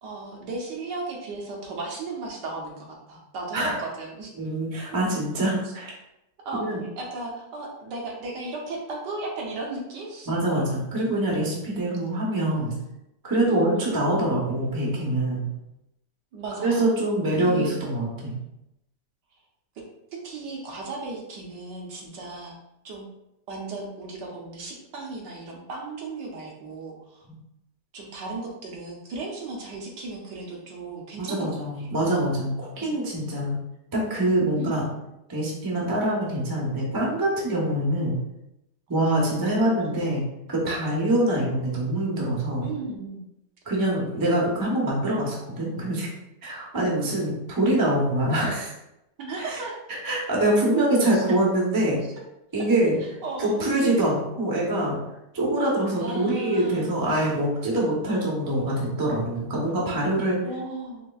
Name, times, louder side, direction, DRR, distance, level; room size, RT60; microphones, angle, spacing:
voice 1, 0.0-4.3 4.9-5.0 5.6-5.7 6.4-10.3 13.5-13.9 16.3-16.9 17.4-17.8 20.1-22.5 22.8-23.1 23.5-27.3 27.9-31.9 32.8-32.9 34.6-34.8 39.4-40.0 42.6-43.2 46.7-47.0 49.2-49.8 51.1-51.4 53.2-53.7 56.0-56.9 60.4-61.0, right 2 dB, 75° right, -1 dB, 1.5 m, -35 dB
voice 2, 4.4-6.0 6.5-6.8 10.3-12.7 13.2-15.5 16.6-18.4 31.2-33.6 33.9-34.9 35.3-38.2 38.9-40.2 40.5-42.7 43.6-46.1 46.4-48.7 49.4-49.6 49.9-52.0 52.5-53.0 53.4-55.0 55.3-60.4, right 1 dB, 25° right, -3 dB, 0.4 m, -24 dB
4.4 x 3.2 x 2.3 m, 0.86 s
omnidirectional pair, 1.9 m